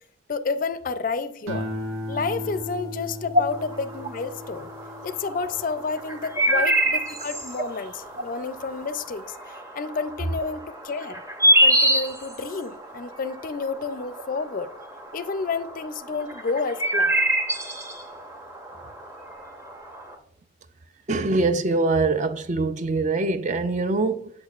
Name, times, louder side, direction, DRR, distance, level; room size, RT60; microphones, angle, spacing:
voice 1, 0.3-1.7 2.1-4.7 5.0-11.2 11.6-14.7 15.1-17.2, left 4 dB, 45° left, 0.4 m, -30 dB
sound 1, 1.5-8.0 8.5-8.9, left 1 dB, 90° right, 0.8 m, -36 dB
sound 2, 3.5-20.1, right 1 dB, 15° right, 0.8 m, -27 dB
voice 2, 21.1-24.3, right 3 dB, 35° right, 0.4 m, -23 dB
8.3 x 8.3 x 2.4 m
head